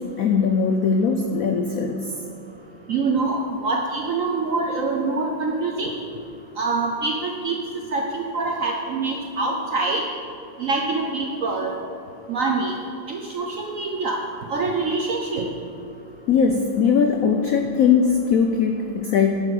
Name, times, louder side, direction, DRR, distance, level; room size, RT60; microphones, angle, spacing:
voice 1, 0.0-2.0 16.3-19.4, left 6 dB, 90° left, 4 dB, 0.7 m, -20 dB
voice 2, 2.9-5.9 6.6-7.6 7.9-10.0 10.6-11.8 12.3-12.7 13.1-14.2 14.5-15.5, right 3 dB, 70° right, 1 dB, 0.8 m, -25 dB
11.0 x 6.9 x 5.0 m, 2.7 s
omnidirectional pair, 2.2 m